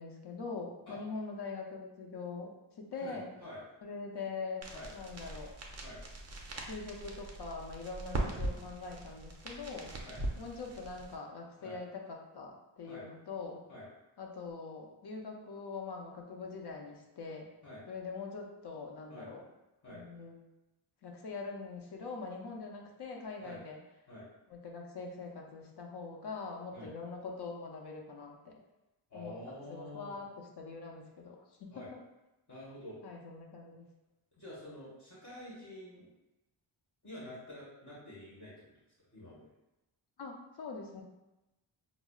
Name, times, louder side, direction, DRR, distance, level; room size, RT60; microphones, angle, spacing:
voice 1, 0.0-3.3 3.8-4.6 4.9-5.5 6.6-9.9 10.4-13.6 14.2-17.5 17.9-19.4 19.9-20.4 21.0-23.8 24.5-28.6 29.1-30.3 30.6-31.9 33.0-33.9 40.2-41.0, left 4 dB, 55° left, 1 dB, 0.6 m, -43 dB
voice 2, 2.9-3.6 4.7-4.9 5.8-6.0 10.0-10.2 11.6-11.8 12.8-13.1 13.7-13.8 17.6-17.8 19.1-19.3 19.8-20.0 23.4-23.6 24.1-24.3 26.7-26.9 29.1-30.2 31.7-31.9 32.5-33.0 34.4-36.1 37.0-38.7 39.0-39.4, left 1 dB, 35° left, -8 dB, 1.2 m, -48 dB
sound 1, 4.6-11.1, right 2 dB, 35° right, 0.5 m, -41 dB
5.7 x 2.0 x 2.3 m, 0.96 s
wide cardioid pair, 130°, 50 cm